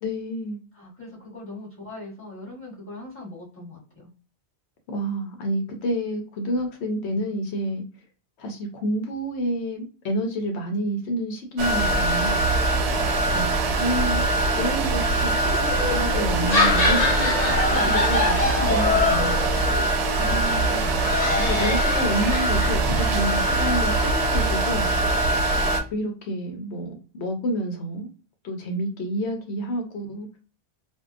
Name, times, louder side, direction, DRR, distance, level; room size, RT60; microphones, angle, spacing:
voice 1, 0.0-0.6 4.9-7.8 8.4-12.4 13.3-14.2 14.5-17.3 17.8-19.7 20.2-20.8 21.4-24.9 25.9-28.1 28.4-30.4, equal, 75° left, 3 dB, 0.9 m, -29 dB
voice 2, 0.7-4.1 17.7-17.9 18.2-19.1 20.3-20.8, left 2 dB, 10° left, -5 dB, 1.1 m, -40 dB
sound 1, 11.6-25.8, right 2 dB, 75° right, 0.8 m, -23 dB
sound 2, 15.7-24.1, left 3 dB, 40° left, 0.8 m, -26 dB
2.7 x 2.1 x 2.4 m, 0.36 s
omnidirectional pair, 1.1 m